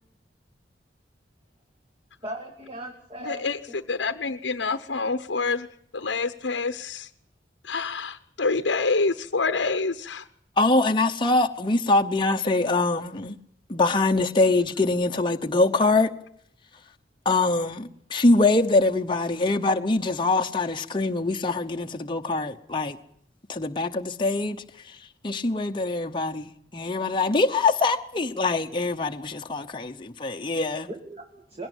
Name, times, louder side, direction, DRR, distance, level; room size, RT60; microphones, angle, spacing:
voice 1, 2.2-3.6 30.9-31.7, right 1 dB, 30° right, 2.2 m, -38 dB
voice 2, 3.3-3.6 3.9-5.7 5.9-7.1 7.7-10.2, left 4 dB, 75° left, 0.9 m, -27 dB
voice 3, 10.6-13.4 13.7-16.1 17.2-23.0 23.5-25.0 25.2-30.9, left 2 dB, 25° left, 0.9 m, -23 dB
21.0 x 17.5 x 9.1 m
head